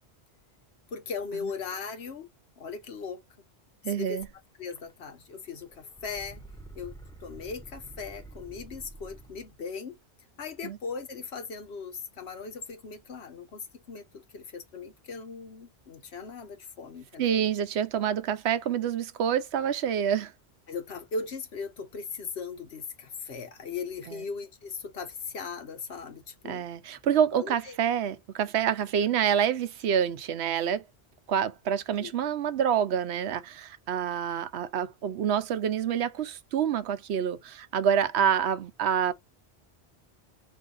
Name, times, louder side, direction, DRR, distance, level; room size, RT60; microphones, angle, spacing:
voice 1, 0.9-2.3 2.6-3.2 3.9-4.2 4.6-6.4 6.8-6.9 7.2-10.0 10.4-17.4 20.7-26.7 27.3-27.8 32.0-32.1, left 5 dB, 80° left, 1.2 m, -38 dB
voice 2, 3.8-4.3 10.6-10.8 17.2-20.3 24.1-24.2 26.4-30.8 31.3-39.1, right 8 dB, 85° right, 0.9 m, -27 dB
sound 1, 4.2-4.3 4.7-5.2 5.5-9.5, right 2 dB, 5° left, 0.6 m, -48 dB
4.3 x 2.6 x 3.8 m
omnidirectional pair, 1.1 m